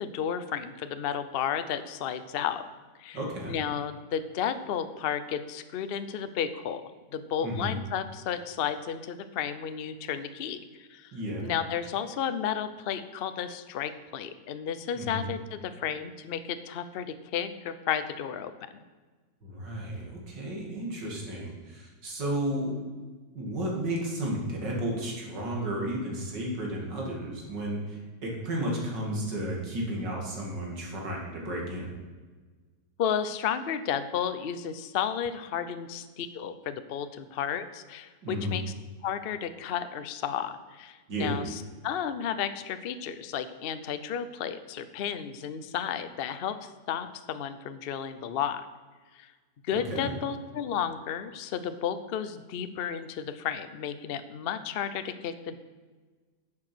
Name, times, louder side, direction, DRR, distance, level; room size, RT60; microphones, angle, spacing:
voice 1, 0.0-2.6 3.0-3.2 3.5-6.8 7.1-11.2 11.4-18.5 33.0-38.6 39.0-48.6 49.1-49.3 49.6-55.6, left 8 dB, 70° left, 11 dB, 0.5 m, -33 dB
voice 2, 3.1-3.6 7.4-7.8 11.1-11.4 14.9-15.3 19.4-22.8 23.3-31.9 38.2-38.6 41.1-41.3 49.7-50.1, right 1 dB, 85° right, -1 dB, 3.1 m, -33 dB
10.5 x 7.7 x 6.1 m, 1.4 s
omnidirectional pair, 1.9 m